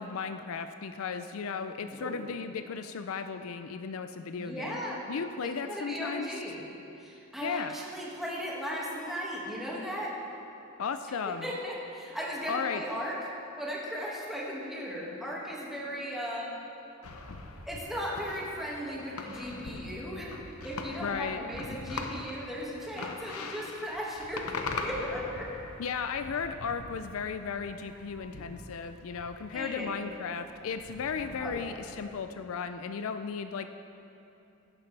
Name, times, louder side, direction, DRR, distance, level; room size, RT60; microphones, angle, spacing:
voice 1, 0.0-4.8 5.1-6.3 7.4-7.7 10.8-11.5 12.5-12.8 21.0-21.4 25.8-33.7, left 6 dB, 70° left, 9 dB, 0.4 m, -35 dB
voice 2, 1.8-2.2 4.4-5.0 5.4-6.6 7.0-10.2 11.2-13.2 13.6-16.5 17.7-25.5 29.5-29.9 31.4-31.8, equal, ahead, -5 dB, 1.9 m, -37 dB
sound 1, 17.0-32.2, left 3 dB, 85° left, 0.8 m, -42 dB
15.0 x 11.0 x 3.3 m, 2.8 s
head